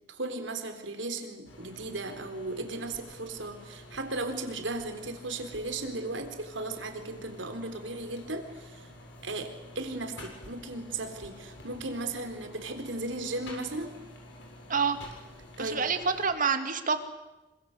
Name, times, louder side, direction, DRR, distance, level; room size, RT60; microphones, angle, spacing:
voice 1, 0.0-8.9 9.2-13.9 15.6-15.8, right 2 dB, 80° right, 7 dB, 3.9 m, -36 dB
sound 1, 1.4-16.3, left 1 dB, 75° left, 7.4 m, -49 dB
voice 2, 15.6-17.0, right 5 dB, 45° right, 8 dB, 2.4 m, -27 dB
27.5 x 25.5 x 8.1 m, 1.1 s
head